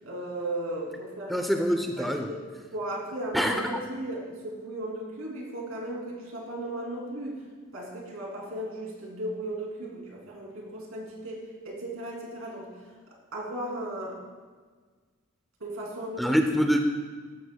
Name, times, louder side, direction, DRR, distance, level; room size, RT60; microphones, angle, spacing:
voice 1, 0.0-1.5 2.0-2.4 2.7-3.4 3.7-7.4 7.7-12.7 13.3-14.2 15.6-16.4, right 1 dB, 80° right, -3 dB, 2.8 m, -36 dB
voice 2, 1.3-2.3 3.3-3.6 16.2-16.8, equal, ahead, 4 dB, 0.5 m, -25 dB
14.0 x 11.5 x 2.3 m, 1.5 s
head